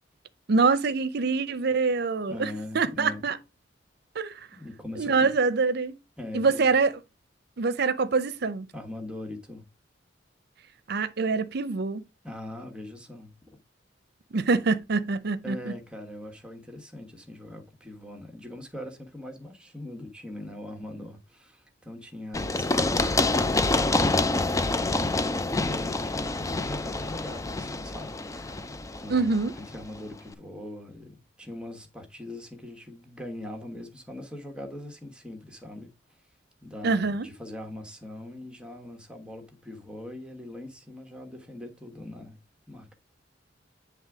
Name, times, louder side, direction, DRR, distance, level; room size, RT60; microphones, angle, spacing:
voice 1, 0.5-3.4 4.2-4.3 5.0-5.9 6.3-6.9 7.6-8.7 10.9-12.0 14.3-15.7 29.1-29.5 36.8-37.3, right 4 dB, 60° right, 0.6 m, -25 dB
voice 2, 2.3-3.3 4.5-5.3 6.2-6.7 8.7-9.6 12.2-13.3 15.4-28.6 29.0-29.3 29.5-35.9 36.6-42.4 42.7-42.9, left 1 dB, 5° right, 1.3 m, -41 dB
Run, 22.3-30.0, left 2 dB, 20° left, 0.5 m, -27 dB
9.2 x 3.4 x 4.8 m
head